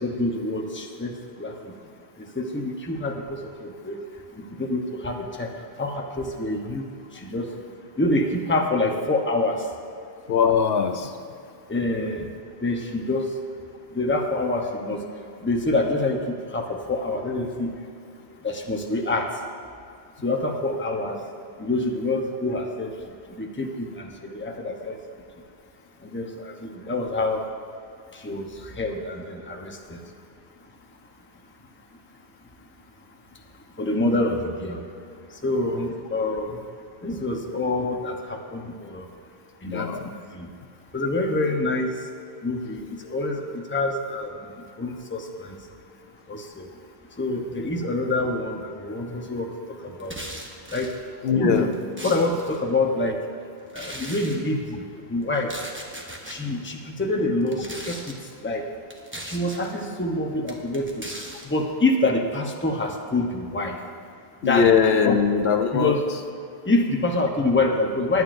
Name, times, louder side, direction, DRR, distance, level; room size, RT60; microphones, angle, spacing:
voice 1, 0.0-1.7 2.4-4.0 4.4-5.5 5.8-6.8 7.1-7.5 8.0-9.6 11.7-12.3 12.6-13.3 13.9-15.0 15.4-17.7 18.4-19.3 20.2-21.2 21.6-22.9 23.4-25.0 26.1-27.4 28.2-28.5 28.8-30.0 33.8-34.8 35.4-36.6 37.0-39.1 39.6-39.9 40.3-40.5 40.9-41.9 42.4-44.3 44.8-45.6 46.3-46.7 47.2-49.5 50.0-50.1 50.7-50.9 51.3-51.7 52.0-53.2 53.7-55.5 56.3-58.1 58.4-58.7 59.2-61.0 61.4-63.8 64.4-65.2 65.7-66.0 66.7-68.2, left 2 dB, 10° left, 2 dB, 0.8 m, -26 dB
voice 2, 10.3-11.1 39.7-40.1 51.2-51.7 64.4-65.9, left 6 dB, 70° left, 6 dB, 0.9 m, -21 dB
sound 1, 50.0-51.0 51.6-52.6 53.7-54.4 55.3-56.4 57.4-58.2 58.9-59.7 60.5-61.5, right 1 dB, 10° right, 1.0 m, -38 dB
20.0 x 9.2 x 2.6 m, 2.5 s
omnidirectional pair, 1.1 m